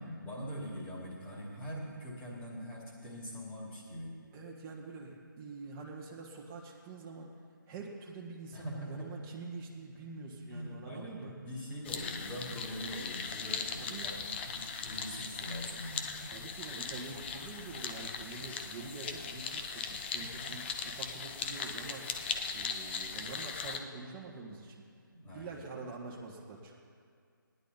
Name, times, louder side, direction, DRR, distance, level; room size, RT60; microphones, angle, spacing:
voice 1, 0.0-4.2 8.5-9.2 10.5-16.1 20.2-20.6 25.1-25.6, equal, 15° left, -5 dB, 2.5 m, -43 dB
voice 2, 4.3-7.3 7.7-11.3 13.8-14.1 16.3-24.8 25.3-26.8, right 4 dB, 15° right, -3 dB, 1.6 m, -46 dB
sound 1, 11.8-23.8, left 6 dB, 30° left, 0.7 m, -39 dB
18.0 x 10.5 x 4.1 m, 2.2 s
figure-of-eight pair, 150°, 11 cm